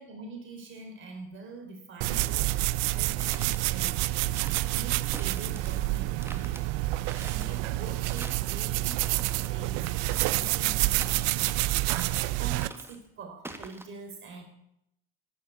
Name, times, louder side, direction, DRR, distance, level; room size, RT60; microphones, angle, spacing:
voice 1, 0.0-6.5 6.8-14.4, right 3 dB, 40° right, 4 dB, 3.6 m, -45 dB
sound 1, 2.0-12.7, right 18 dB, 60° right, 0.6 m, -28 dB
sound 2, 3.0-3.6 4.2-4.7 5.1-5.8 6.2-6.6 7.0-7.6 8.0-8.5 8.9-9.5 10.1-10.6 11.0-11.6 11.9-12.3 12.6-13.0 13.4-13.8, right 2 dB, 10° right, 1.6 m, -45 dB
11.5 x 9.4 x 8.2 m, 0.79 s
hypercardioid pair, 80°, 30 cm